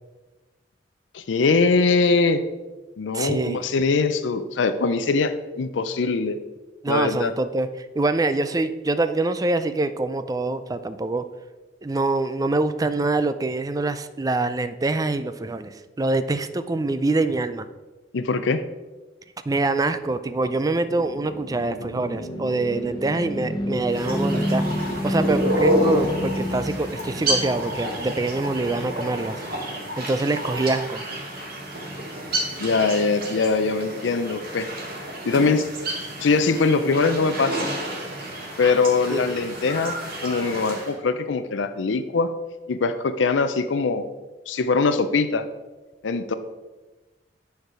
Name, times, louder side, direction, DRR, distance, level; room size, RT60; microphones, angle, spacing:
voice 1, 1.1-2.4 3.0-6.4 6.9-7.3 18.1-18.6 32.6-34.7 35.2-35.7 36.2-37.7 38.6-39.9 40.2-42.3 42.7-44.1 44.5-45.4 46.0-46.3, left 4 dB, 85° left, 11 dB, 0.5 m, -22 dB
voice 2, 3.1-3.6 6.8-7.7 8.0-11.2 11.8-17.7 19.5-24.6 25.0-29.4 30.0-31.0 39.1-39.3, right 2 dB, 20° right, 11 dB, 0.4 m, -25 dB
sound 1, 20.0-29.3, equal, 25° left, 0.7 m, -30 dB
sound 2, 23.9-40.9, right 1 dB, 55° right, 2.1 m, -29 dB
9.2 x 4.6 x 4.8 m, 1.2 s
head